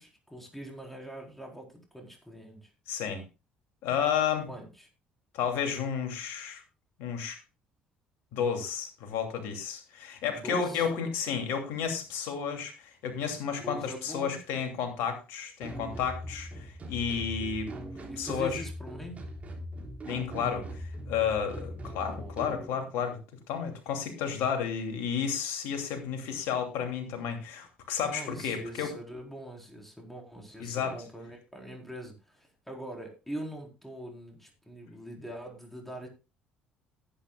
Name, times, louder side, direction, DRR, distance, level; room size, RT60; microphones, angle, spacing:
voice 1, 0.0-2.7 4.5-4.9 10.3-10.9 13.6-14.4 18.1-19.2 21.8-22.6 28.0-36.1, equal, 5° left, 1 dB, 4.2 m, -43 dB
voice 2, 2.9-3.2 3.8-4.5 5.3-6.6 7.0-7.4 8.3-17.7 18.2-18.6 20.1-23.2 23.5-28.9 30.6-31.0, left 7 dB, 60° left, 5 dB, 2.7 m, -32 dB
sound 1, 15.6-22.7, equal, 30° right, 3.9 m, -40 dB
18.5 x 9.0 x 2.4 m, 0.28 s
figure-of-eight pair, 50°, 4 cm